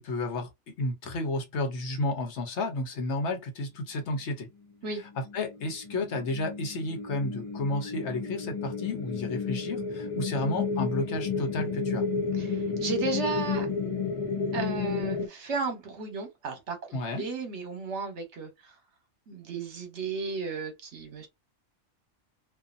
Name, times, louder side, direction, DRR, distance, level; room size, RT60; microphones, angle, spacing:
voice 1, 0.0-4.5 5.3-12.0 16.9-17.2, left 2 dB, 65° left, 1.0 m, -32 dB
sound 1, 5.0-15.3, left 4 dB, 35° left, 0.6 m, -32 dB
voice 2, 12.4-13.7 14.5-18.7 19.3-21.3, right 4 dB, 65° right, 1.2 m, -34 dB
2.5 x 2.5 x 2.5 m
omnidirectional pair, 1.3 m